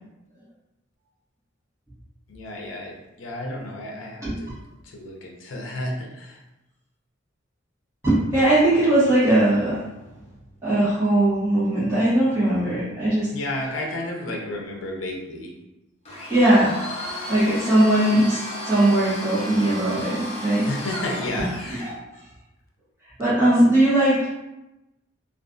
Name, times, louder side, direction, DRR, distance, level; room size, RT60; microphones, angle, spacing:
voice 1, 2.3-4.5 4.9-6.4 13.3-15.5 20.7-21.9, left 1 dB, 70° left, -1 dB, 0.5 m, -32 dB
voice 2, 8.0-9.8 10.6-13.8 16.3-16.8 17.3-20.7 21.3-21.9 23.2-24.3, right 1 dB, 15° right, -14 dB, 0.9 m, -20 dB
Domestic sounds home sounds, 16.1-21.9, equal, 30° left, 0.6 m, -34 dB
2.4 x 2.4 x 2.4 m, 0.97 s
head